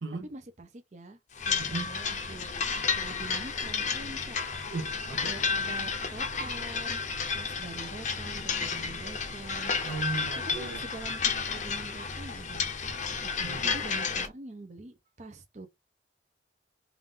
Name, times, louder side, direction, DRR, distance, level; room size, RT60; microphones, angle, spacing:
voice 1, 0.2-1.2 1.4-2.6 2.9-4.4 5.2-7.0 7.3-9.7 10.5-12.7 13.2-15.7, right 2 dB, 40° right, 0.6 m, -45 dB
sound 1, 1.3-14.3, left 5 dB, 40° left, 0.7 m, -32 dB
voice 2, 1.6-1.9 4.7-5.4 9.8-10.8 13.4-13.8, right 3 dB, 75° right, 0.8 m, -36 dB
3.5 x 2.5 x 3.7 m
head